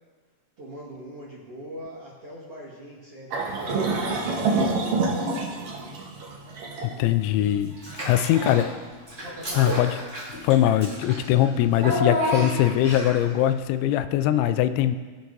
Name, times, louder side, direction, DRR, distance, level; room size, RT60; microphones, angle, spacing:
voice 1, 0.6-6.1 6.8-7.3 8.0-8.8 9.2-9.9, equal, 45° right, -6 dB, 2.2 m, -42 dB
sound 1, 3.3-8.5, right 3 dB, 80° right, 1.3 m, -27 dB
voice 2, 6.8-8.7 9.5-10.0 10.4-15.0, left 12 dB, 85° left, 11 dB, 2.8 m, -22 dB
Child speech kid speaking / Bathtub (filling or washing), 7.8-8.7 9.1-13.3, equal, 15° right, 1.0 m, -30 dB
19.5 x 7.0 x 4.0 m, 1.4 s
omnidirectional pair, 5.2 m